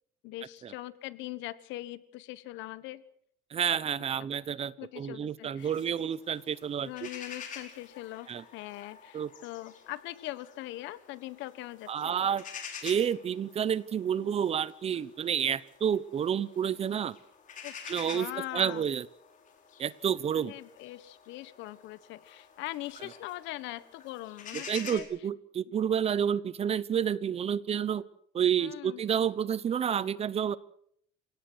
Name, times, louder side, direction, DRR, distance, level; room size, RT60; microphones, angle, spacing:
voice 1, 0.2-3.0 3.9-4.0 4.8-5.8 6.8-12.1 17.6-17.8 18.1-18.9 20.3-25.1 25.7-25.8 28.6-29.0, left 16 dB, 75° left, 16 dB, 1.4 m, -41 dB
voice 2, 3.5-6.9 8.3-8.4 9.1-9.3 11.9-12.4 12.8-17.2 17.9-18.3 18.5-19.1 19.8-20.5 24.5-28.0 28.3-30.6, right 8 dB, 30° right, 19 dB, 0.9 m, -29 dB
sound 1, 5.6-25.0, left 7 dB, 40° left, 5.0 m, -49 dB
28.5 x 17.5 x 6.3 m, 0.68 s
cardioid pair, 135°, 19 cm